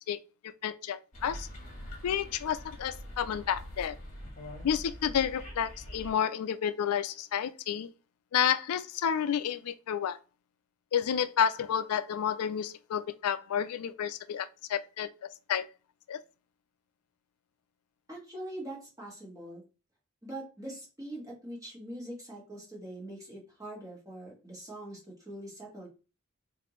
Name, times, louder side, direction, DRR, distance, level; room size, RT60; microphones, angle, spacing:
voice 1, 0.6-1.5 2.0-4.0 4.6-7.9 8.3-10.2 10.9-15.1 15.5-15.7 16.1-16.2, left 8 dB, 80° left, 0.3 m, -30 dB
sound 1, 1.1-6.1, equal, 35° left, 1.4 m, -44 dB
voice 2, 18.1-19.6 20.2-25.9, right 1 dB, 15° right, 1.5 m, -43 dB
4.1 x 2.6 x 3.1 m
head